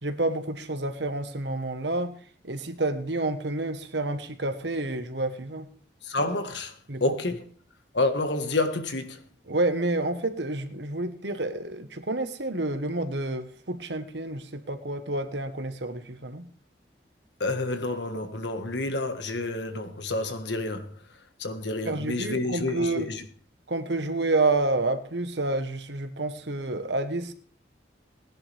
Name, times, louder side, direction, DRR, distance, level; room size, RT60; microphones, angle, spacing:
voice 1, 0.0-2.1 2.4-5.7 6.9-7.0 9.5-16.5 21.9-23.1 23.7-27.3, right 2 dB, 75° right, 1.4 m, -29 dB
voice 2, 6.0-7.4 7.9-9.2 17.4-21.0 21.4-23.2, left 2 dB, 75° left, 1.7 m, -29 dB
19.5 x 10.5 x 3.5 m
head